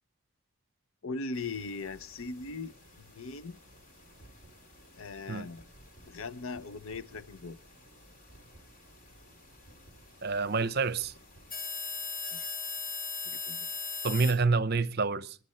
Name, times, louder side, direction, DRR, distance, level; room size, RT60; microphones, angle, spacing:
voice 1, 1.0-3.6 5.0-5.6 6.0-7.6 12.3-12.5 12.8-12.9 13.2-13.7, left 3 dB, 70° left, 0.7 m, -40 dB
sound 1, 1.3-14.3, left 5 dB, 40° left, 3.2 m, -43 dB
voice 2, 10.2-11.1 14.0-15.4, right 4 dB, 45° right, 0.7 m, -27 dB
29.5 x 10.5 x 4.3 m
head